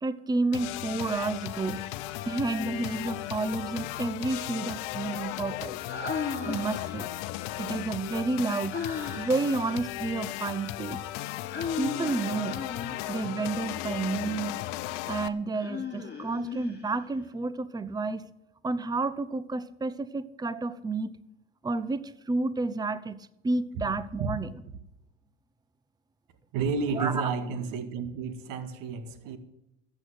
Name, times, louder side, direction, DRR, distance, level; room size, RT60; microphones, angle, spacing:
voice 1, 0.0-1.8 2.3-5.8 6.5-7.1 7.6-8.8 9.2-11.0 11.8-12.6 13.1-14.6 15.1-18.3 18.6-21.2 21.6-24.5 27.0-27.3, right 3 dB, 10° right, 0.8 m, -30 dB
sound 1, 0.5-15.3, left 15 dB, 70° left, 1.0 m, -36 dB
Human voice, 2.5-3.4 5.9-7.2 8.7-9.5 11.5-13.3 15.5-17.2, left 5 dB, 25° left, 6.4 m, -36 dB
voice 2, 26.5-29.4, right 5 dB, 60° right, 2.0 m, -31 dB
14.0 x 8.6 x 7.8 m
hypercardioid pair, 85°, 37 cm